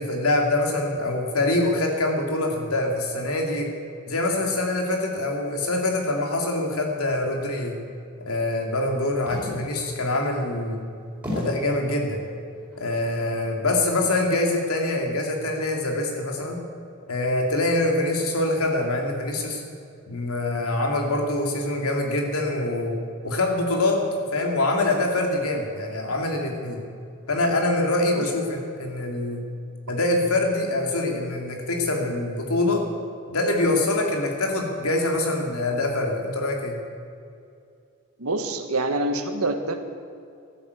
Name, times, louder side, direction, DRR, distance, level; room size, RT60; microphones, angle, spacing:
voice 1, 0.0-3.7 4.1-7.8 8.2-10.8 11.3-12.3 12.8-16.6 17.1-19.6 20.1-23.0 23.2-24.0 24.3-26.8 27.3-29.4 29.9-32.8 33.3-36.7, left 2 dB, 85° left, 2 dB, 2.8 m, -24 dB
sound 1, 9.3-9.9 10.4-10.5 11.2-11.8 12.5-13.0, left 1 dB, 5° right, 4.4 m, -32 dB
voice 2, 38.2-39.8, right 2 dB, 90° right, 7 dB, 1.5 m, -26 dB
15.0 x 11.5 x 8.3 m, 2.4 s
head